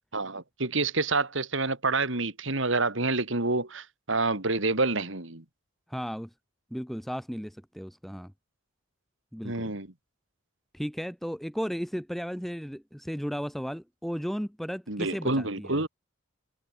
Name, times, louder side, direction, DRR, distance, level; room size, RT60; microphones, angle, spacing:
voice 1, 0.1-5.4 9.4-9.9 14.9-15.9, right 3 dB, 70° right, 3.1 m, -28 dB
voice 2, 5.9-6.3 6.7-8.3 9.3-9.7 10.7-15.8, equal, ahead, 2.0 m, -35 dB
head